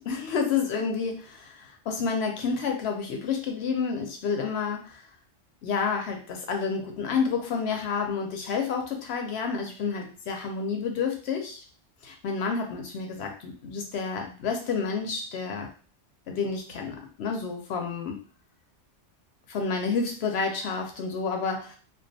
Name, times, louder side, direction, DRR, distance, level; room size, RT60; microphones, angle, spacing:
voice 1, 0.1-5.0 5.6-11.6 12.0-15.7 16.3-18.2 19.5-21.8, left 5 dB, 70° left, 3 dB, 0.8 m, -29 dB
2.3 x 2.3 x 2.6 m, 0.40 s
omnidirectional pair, 1.2 m